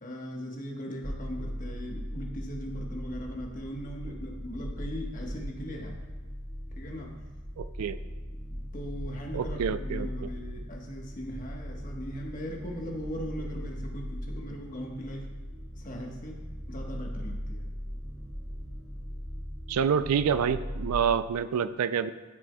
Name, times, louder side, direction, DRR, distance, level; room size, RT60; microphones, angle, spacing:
voice 1, 0.0-5.9 6.7-7.1 8.7-15.3 15.7-16.4 16.7-17.7, equal, 35° left, 0 dB, 1.2 m, -39 dB
sound 1, 1.0-20.9, equal, ahead, 1.0 m, -39 dB
voice 2, 7.6-8.0 9.3-10.3 19.7-22.1, right 7 dB, 90° right, 13 dB, 0.4 m, -27 dB
13.0 x 6.1 x 2.2 m, 1.4 s
head